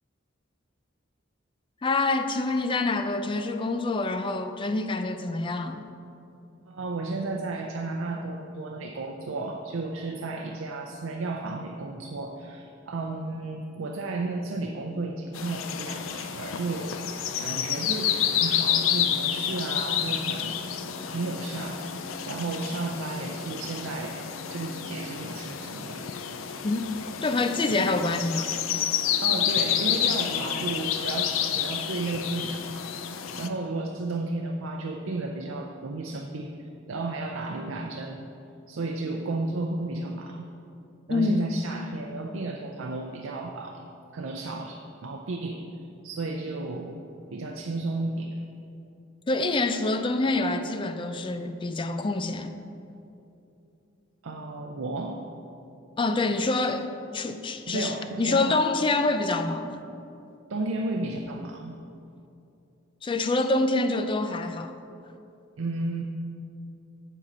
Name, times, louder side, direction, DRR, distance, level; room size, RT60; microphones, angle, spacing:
voice 1, 1.8-5.9 26.6-26.9 27.2-28.5 41.1-41.5 49.3-52.5 56.0-59.8 63.0-64.8, left 2 dB, 25° left, 8 dB, 0.4 m, -26 dB
voice 2, 6.7-16.9 17.4-20.6 21.1-24.2 24.5-26.1 29.2-32.9 33.4-38.3 38.7-40.5 41.1-43.8 44.1-45.6 46.0-47.0 47.3-48.5 54.2-55.2 57.7-58.6 60.5-61.7 65.6-66.0, right 2 dB, 80° right, 2 dB, 0.5 m, -33 dB
sound 1, 15.3-33.5, left 9 dB, 85° left, 0.5 m, -29 dB
7.8 x 7.5 x 4.2 m, 2.7 s
head